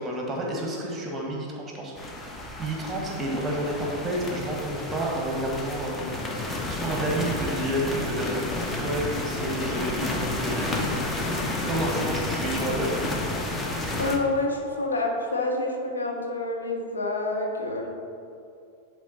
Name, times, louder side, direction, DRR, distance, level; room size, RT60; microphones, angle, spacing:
voice 1, 0.0-1.9 2.2-10.9 11.7-13.1, right 1 dB, 15° right, -1 dB, 1.6 m, -30 dB
sound 1, 2.0-14.2, left 2 dB, 15° left, 0.9 m, -31 dB
voice 2, 14.0-17.9, left 2 dB, 75° left, 1 dB, 1.0 m, -28 dB
10.5 x 4.2 x 4.1 m, 2.5 s
figure-of-eight pair, 90°, 0 cm